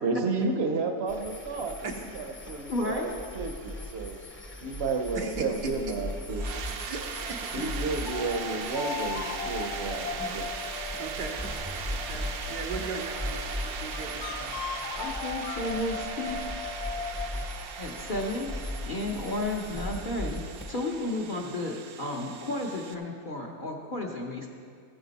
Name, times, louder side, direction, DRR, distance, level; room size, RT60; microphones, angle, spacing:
voice 1, 0.0-4.2 4.6-6.5 7.5-10.5, right 3 dB, 45° right, 5 dB, 1.0 m, -32 dB
sound 1, 1.1-20.7, left 1 dB, 10° left, 0.6 m, -39 dB
voice 2, 2.7-3.2 15.0-16.4 17.8-18.5 18.8-24.5, left 1 dB, 40° left, 0 dB, 0.8 m, -33 dB
voice 3, 5.1-5.7 6.8-7.5 11.0-11.4 12.1-14.6, right 4 dB, 85° right, 2 dB, 1.7 m, -38 dB
sound 2, 6.3-22.9, right 6 dB, 65° right, 1.1 m, -39 dB
sound 3, 8.1-17.5, left 6 dB, 75° left, 1.1 m, -38 dB
14.5 x 9.3 x 4.1 m, 2.2 s
omnidirectional pair, 1.7 m